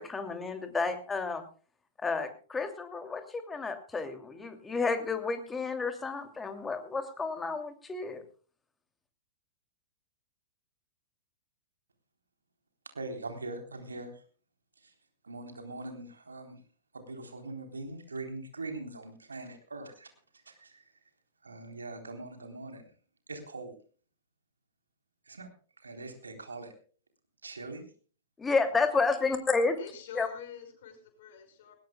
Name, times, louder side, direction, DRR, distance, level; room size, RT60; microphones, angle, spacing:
voice 1, 0.0-1.4 2.0-8.2 28.4-29.8 30.1-30.3, left 4 dB, 15° left, 7 dB, 2.7 m, -31 dB
voice 2, 12.9-14.2 14.8-14.9 15.2-16.6 16.9-20.1 20.5-20.9 21.4-22.9 23.3-23.8 25.3-25.5 25.8-26.7 27.4-27.9, right 2 dB, 80° right, 6 dB, 3.7 m, -42 dB
voice 3, 29.8-31.7, left 9 dB, 55° left, 6 dB, 5.6 m, -46 dB
20.5 x 19.0 x 2.3 m, 0.39 s
figure-of-eight pair, 100°, 0 cm